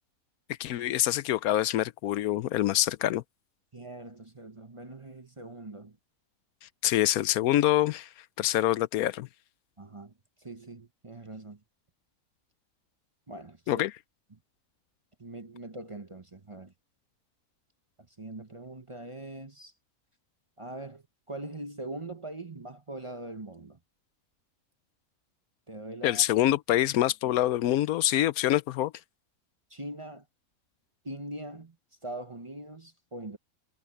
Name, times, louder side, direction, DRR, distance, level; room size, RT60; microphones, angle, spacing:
voice 1, 0.6-3.2 6.8-8.1 8.4-9.3 13.7-13.9 26.0-28.9, left 13 dB, 80° left, 1.0 m, -25 dB
voice 2, 3.7-6.0 9.8-10.1 10.4-11.6 13.3-13.9 14.3-14.4 15.2-16.7 18.2-19.7 20.6-23.8 25.7-26.2 29.7-30.2 31.0-31.8 32.0-33.4, right 2 dB, 25° right, 0.9 m, -42 dB
omnidirectional pair, 1.5 m